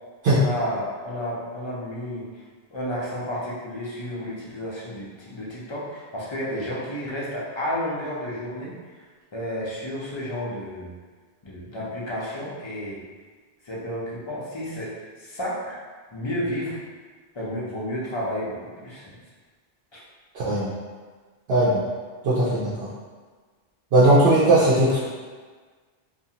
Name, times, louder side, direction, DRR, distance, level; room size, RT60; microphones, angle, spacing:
voice 1, 0.3-2.3 2.7-8.7 9.3-10.9 11.4-13.0 13.6-15.8 16.1-16.8 17.3-19.1 19.9-20.0, equal, 35° left, -6 dB, 0.5 m, -31 dB
voice 2, 20.3-20.7 21.5-21.8 22.2-22.9 23.9-25.0, right 1 dB, 75° right, -10 dB, 0.8 m, -18 dB
2.6 x 2.4 x 2.8 m, 1.5 s
omnidirectional pair, 1.0 m